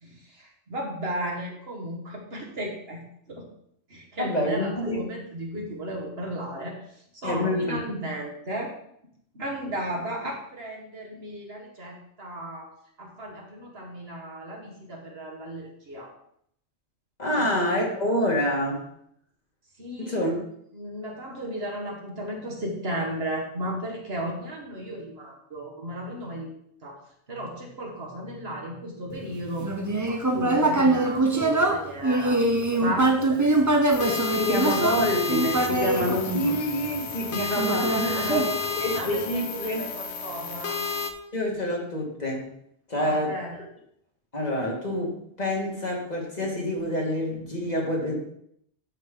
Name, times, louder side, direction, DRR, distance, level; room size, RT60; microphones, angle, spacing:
voice 1, 0.0-3.0 3.3-3.5 3.9-6.8 7.1-8.7 9.3-12.7 13.0-16.1 17.3-17.5 19.8-20.2 20.7-26.5 26.8-27.0 27.3-32.4 32.8-33.5 34.1-34.8 37.9-38.4 38.9-40.8 43.0-43.6, right 1 dB, 60° right, 0 dB, 1.9 m, -35 dB
voice 2, 4.2-5.0 7.2-7.8 17.2-18.9 20.0-20.3 34.3-39.9 41.3-42.5 42.9-43.4 44.3-48.2, equal, 40° left, -2 dB, 2.0 m, -27 dB
Human voice, 29.6-37.0 37.6-39.0, right 2 dB, 20° right, 0.7 m, -23 dB
sound 1, 33.9-41.1, left 4 dB, 75° left, 1.1 m, -31 dB
12.0 x 5.3 x 3.8 m, 0.71 s
omnidirectional pair, 1.2 m